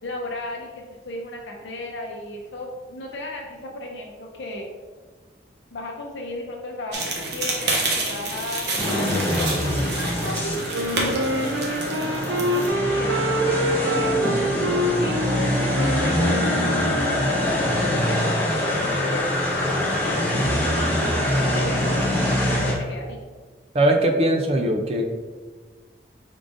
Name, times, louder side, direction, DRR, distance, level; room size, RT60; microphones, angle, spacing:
voice 1, 0.0-4.7 5.7-8.7 9.1-10.6 11.0-13.2 13.9-14.2 15.0-16.4 17.1-18.4 19.0-21.8 22.6-23.2, left 2 dB, 80° left, -1 dB, 0.6 m, -35 dB
sound 1, 6.9-12.7, right 2 dB, 65° right, 0.9 m, -29 dB
sound 2, 8.8-22.7, left 1 dB, 10° left, 0.9 m, -24 dB
Wind instrument woodwind instrument, 10.7-17.4, right 1 dB, 90° right, 0.5 m, -26 dB
voice 2, 23.7-25.1, right 1 dB, 35° right, 3 dB, 0.4 m, -20 dB
4.8 x 3.7 x 2.6 m, 1.4 s
head